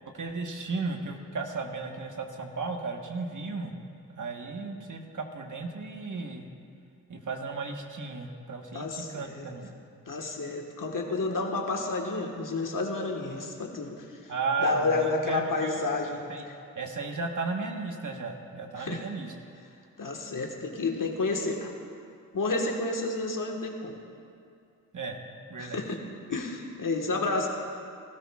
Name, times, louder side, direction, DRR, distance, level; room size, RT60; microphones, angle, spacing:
voice 1, 0.1-3.8 4.1-6.5 7.1-9.7 14.3-15.8 16.3-16.5 16.7-19.3 24.9-25.2 25.5-25.8, right 4 dB, 60° right, 3 dB, 1.4 m, -34 dB
voice 2, 8.7-9.5 10.1-14.3 14.6-16.6 18.8-19.0 20.0-21.7 22.3-24.0 25.6-26.0 26.3-27.5, left 3 dB, 60° left, 1 dB, 1.6 m, -30 dB
19.5 x 13.0 x 2.4 m, 2.4 s
cardioid pair, 45°, 35 cm